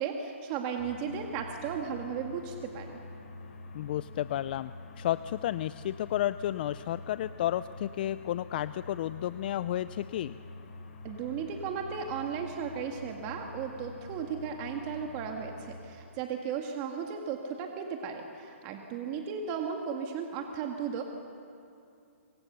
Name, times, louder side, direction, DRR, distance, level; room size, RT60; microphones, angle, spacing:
voice 1, 0.0-3.0 11.0-21.0, right 7 dB, 30° right, 3 dB, 1.9 m, -35 dB
sound 1, 0.8-15.8, left 2 dB, 60° left, 6.7 m, -46 dB
voice 2, 3.7-10.4, left 12 dB, 45° left, 14 dB, 0.5 m, -32 dB
26.0 x 24.5 x 6.9 m, 2.6 s
hypercardioid pair, 150°, 7 cm